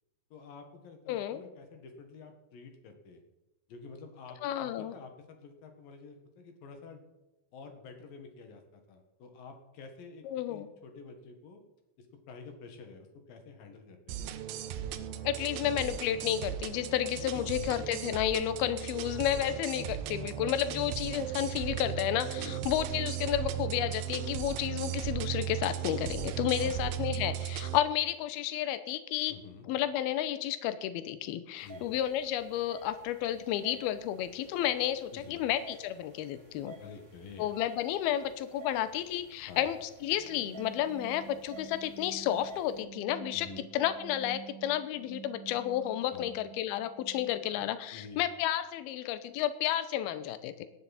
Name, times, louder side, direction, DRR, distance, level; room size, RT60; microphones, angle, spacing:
voice 1, 0.3-3.2 3.7-7.0 7.5-11.6 12.0-14.3 17.3-17.4 20.2-20.3 22.4-22.7 26.6-26.9 29.3-29.7 31.6-31.9 35.1-35.4 36.8-37.5 39.5-39.7 43.3-43.7 46.1-46.4 47.9-48.3, left 4 dB, 60° left, 5 dB, 2.9 m, -49 dB
voice 2, 1.1-1.4 4.4-4.9 10.2-10.7 15.2-29.3 29.7-36.7 37.4-50.7, left 12 dB, 80° left, 12 dB, 2.3 m, -32 dB
sound 1, 14.1-27.8, right 11 dB, 80° right, 2.2 m, -36 dB
sound 2, 31.6-42.8, right 1 dB, 20° right, 3.9 m, -52 dB
sound 3, 40.0-47.8, right 9 dB, 65° right, 1.3 m, -49 dB
17.5 x 13.0 x 4.2 m, 1.0 s
omnidirectional pair, 5.4 m